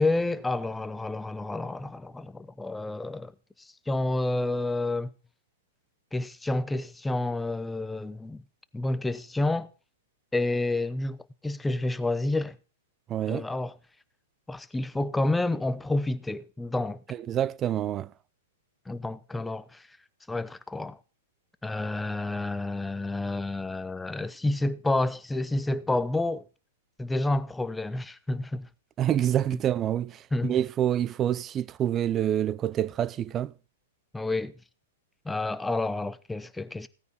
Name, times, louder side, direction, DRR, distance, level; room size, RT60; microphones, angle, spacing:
voice 1, 0.0-3.3 3.9-5.1 6.1-8.4 8.7-9.7 10.3-12.6 13.3-13.8 14.5-17.0 18.9-19.8 20.3-21.0 21.6-26.4 27.0-28.7 30.3-30.5 34.1-34.5 35.2-36.9, left 2 dB, 5° left, 0.8 m, -29 dB
voice 2, 13.1-13.5 17.3-18.1 29.0-33.5, right 10 dB, 25° right, 0.6 m, -27 dB
16.0 x 9.3 x 4.1 m
hypercardioid pair, 115°, 0 cm